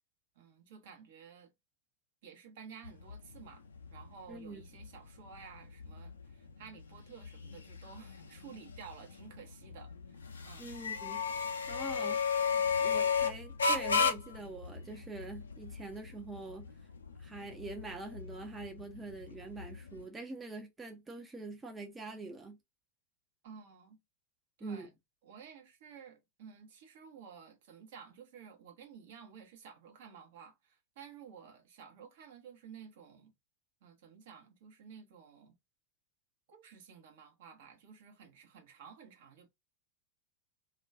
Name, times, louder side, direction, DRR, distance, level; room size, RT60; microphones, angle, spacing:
voice 1, 0.4-1.5 2.2-3.6 3.9-10.7 11.7-12.1 12.5-12.9 23.4-24.0 24.6-24.9 25.2-33.3 33.8-35.5 36.5-39.5, right 7 dB, 55° right, 0.7 m, -53 dB
sound 1, 2.8-20.0, left 5 dB, 70° left, 0.4 m, -36 dB
voice 2, 4.3-4.6 10.6-11.2 11.7-12.2 12.8-16.7 17.2-22.6 24.6-24.9, right 3 dB, 15° right, 0.5 m, -44 dB
2.3 x 2.2 x 3.4 m
figure-of-eight pair, 90°, 0 cm